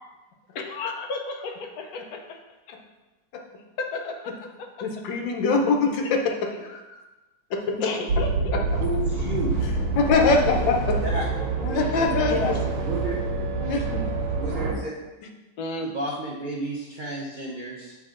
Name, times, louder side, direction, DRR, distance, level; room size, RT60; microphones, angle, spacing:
voice 1, 0.5-2.4 3.8-4.9 6.0-6.1 6.5-6.6 7.8-8.6 12.2-12.6 15.6-15.9, left 3 dB, 65° left, 3 dB, 1.0 m, -33 dB
voice 2, 4.8-6.2 6.7-7.0 7.5-7.6 10.0-11.0 11.6-12.5 13.6-14.0, left 4 dB, 85° left, 3 dB, 1.5 m, -23 dB
sound 1, 8.1-14.7, right 3 dB, 85° right, 1.7 m, -26 dB
voice 3, 8.8-9.5 11.0-11.2 12.8-13.2 14.3-14.9 15.8-17.9, right 1 dB, 60° right, -4 dB, 0.5 m, -31 dB
7.8 x 3.6 x 3.7 m, 1.1 s
omnidirectional pair, 2.0 m